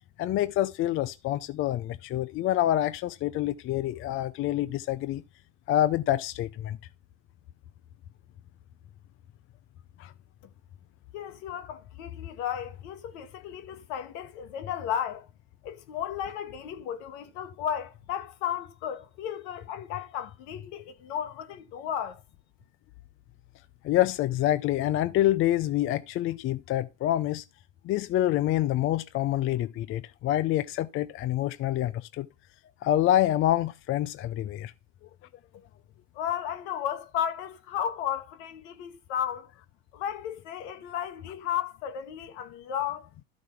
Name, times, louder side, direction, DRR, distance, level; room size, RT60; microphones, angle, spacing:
voice 1, 0.2-5.2 5.7-6.8 10.0-10.1 23.8-27.4 27.8-32.3 32.8-34.7, left 13 dB, 35° left, 0.5 m, -27 dB
voice 2, 11.1-15.3 15.6-22.2 36.1-39.5 39.9-43.1, left 9 dB, 65° left, 1.7 m, -34 dB
13.0 x 4.6 x 5.8 m
hypercardioid pair, 90°, 38 cm